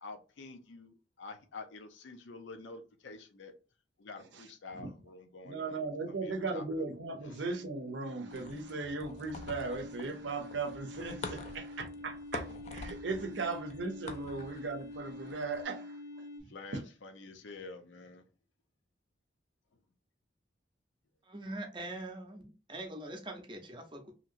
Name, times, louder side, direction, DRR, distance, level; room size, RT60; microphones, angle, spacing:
voice 1, 0.0-3.5 4.0-6.6 7.2-7.4 14.1-14.2 16.5-18.3, left 3 dB, 85° left, 0.6 m, -48 dB
voice 2, 5.4-16.0, right 3 dB, 75° right, 0.6 m, -37 dB
sound 1, 6.2-16.4, left 2 dB, 65° left, 0.9 m, -47 dB
sound 2, 8.3-15.6, left 3 dB, 35° left, 0.3 m, -47 dB
voice 3, 21.2-24.1, right 1 dB, 25° right, 0.6 m, -43 dB
2.9 x 2.8 x 2.5 m
head